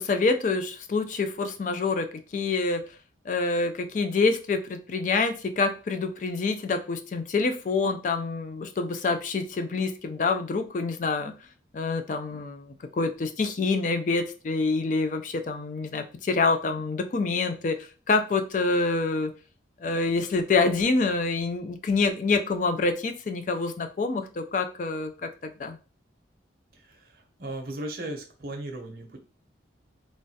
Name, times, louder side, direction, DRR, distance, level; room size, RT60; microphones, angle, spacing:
voice 1, 0.0-2.1 2.3-2.8 3.3-11.3 11.7-17.7 18.1-19.3 19.8-25.8, left 3 dB, 45° left, 7 dB, 0.3 m, -26 dB
voice 2, 26.7-29.2, right 1 dB, 50° right, 3 dB, 0.6 m, -37 dB
3.1 x 2.3 x 2.7 m, 0.35 s
head